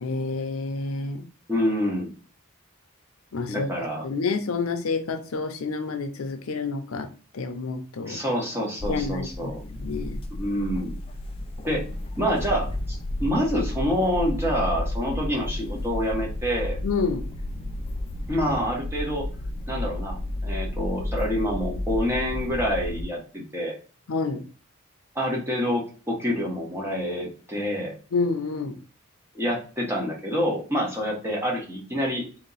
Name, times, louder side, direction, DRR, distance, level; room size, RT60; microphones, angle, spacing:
voice 1, 0.0-1.3 3.3-3.7 4.0-8.2 8.9-9.5 9.8-10.2 16.8-17.3 24.1-24.5 28.1-28.8, left 4 dB, 80° left, 0.6 m, -29 dB
voice 2, 1.5-2.1 3.5-4.0 8.1-9.6 10.3-10.9 11.6-11.9 12.2-16.8 18.3-19.3 19.7-20.2 20.4-23.7 25.1-27.9 29.3-32.3, equal, 10° right, 1.1 m, -27 dB
sound 1, 8.8-23.0, left 1 dB, 25° left, 0.4 m, -32 dB
3.6 x 2.8 x 4.0 m
head